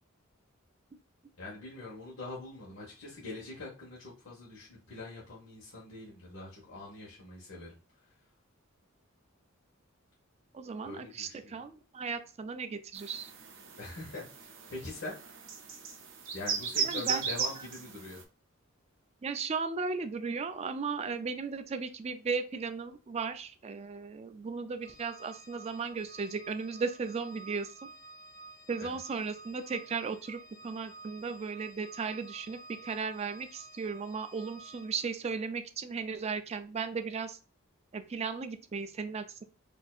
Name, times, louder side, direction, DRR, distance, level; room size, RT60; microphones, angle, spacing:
voice 1, 1.4-7.8 10.8-11.6 13.8-14.2 14.7-15.2 16.3-18.2 28.8-28.9, left 2 dB, 65° left, -6 dB, 1.1 m, -43 dB
voice 2, 10.5-13.3 16.8-17.2 17.6-17.7 19.2-27.9 28.7-37.4 37.9-39.4, right 5 dB, 30° right, 10 dB, 0.3 m, -36 dB
sound 1, 13.0-18.2, right 6 dB, 60° right, 0.7 m, -37 dB
Organ, 24.8-35.2, right 2 dB, 20° left, 1.0 m, -52 dB
4.3 x 2.7 x 2.3 m, 0.36 s
head